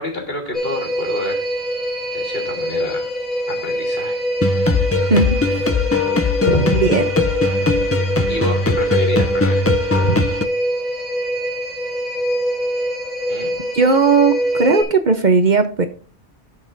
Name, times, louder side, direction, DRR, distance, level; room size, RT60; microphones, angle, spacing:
voice 1, 0.0-1.4 2.1-3.2 3.5-4.2 6.4-6.8 8.3-9.7 10.0-10.1 13.3-13.5, left 1 dB, 60° left, 2 dB, 3.4 m, -26 dB
sound 1, 0.5-14.8, equal, ahead, 3.3 m, -23 dB
sound 2, 4.4-10.4, left 3 dB, 20° left, 0.4 m, -20 dB
voice 2, 5.1-5.6 6.7-7.0 13.7-15.9, right 4 dB, 45° right, 8 dB, 0.9 m, -16 dB
16.5 x 5.8 x 2.6 m, 0.40 s
omnidirectional pair, 1.1 m